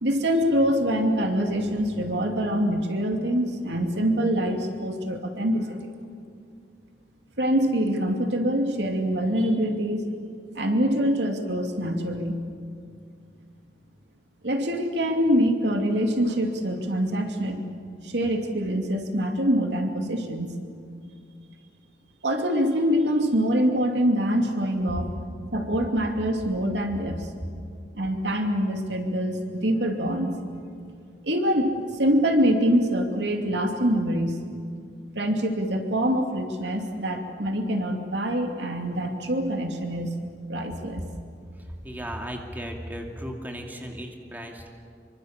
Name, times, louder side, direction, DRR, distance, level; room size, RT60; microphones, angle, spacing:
voice 1, 0.0-5.9 7.4-10.1 10.5-12.4 14.4-17.6 18.0-20.6 22.2-25.1 25.5-27.3 27.9-30.4 31.2-34.4 35.1-40.2 40.5-41.1, equal, 75° right, 4 dB, 2.6 m, -25 dB
voice 2, 41.8-44.7, equal, 10° right, 2 dB, 2.5 m, -36 dB
25.5 x 24.5 x 7.4 m, 2.3 s
head